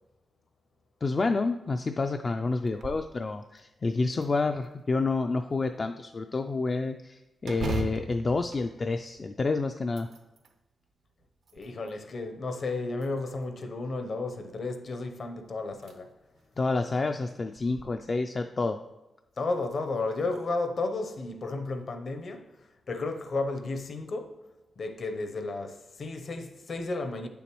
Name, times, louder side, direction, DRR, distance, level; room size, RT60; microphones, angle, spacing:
voice 1, 1.0-10.1 16.6-18.8, left 3 dB, 35° left, 0.3 m, -29 dB
sound 1, 2.6-3.1 3.6-3.7 4.2-5.0 7.4-9.4 9.8-10.6 11.2-12.0 12.9-13.6 15.1-15.2 15.7-15.9 16.4-16.5 17.6-17.8, right 4 dB, 85° right, 0.7 m, -39 dB
voice 2, 11.5-16.1 19.4-22.5 22.9-24.4 24.8-27.3, left 3 dB, 55° left, 0.7 m, -33 dB
9.1 x 7.0 x 3.0 m
wide cardioid pair, 120°, 0 cm